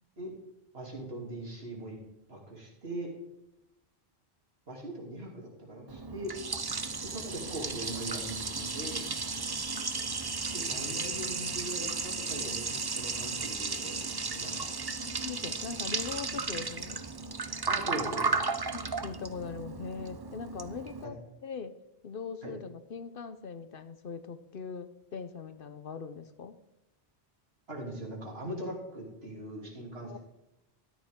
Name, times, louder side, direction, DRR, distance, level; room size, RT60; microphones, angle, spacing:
voice 1, 0.7-2.0 2.3-3.1 4.7-6.3 7.0-9.0 10.5-14.7 17.7-18.4 22.4-22.5 27.7-30.2, right 1 dB, 70° right, -2 dB, 3.2 m, -40 dB
Liquid, 5.9-21.0, right 4 dB, 30° right, 0.5 m, -34 dB
voice 2, 15.0-17.1 18.5-21.7 22.0-26.6 30.0-30.2, left 5 dB, 60° left, 11 dB, 0.9 m, -41 dB
13.5 x 10.5 x 3.6 m, 0.92 s
omnidirectional pair, 1.1 m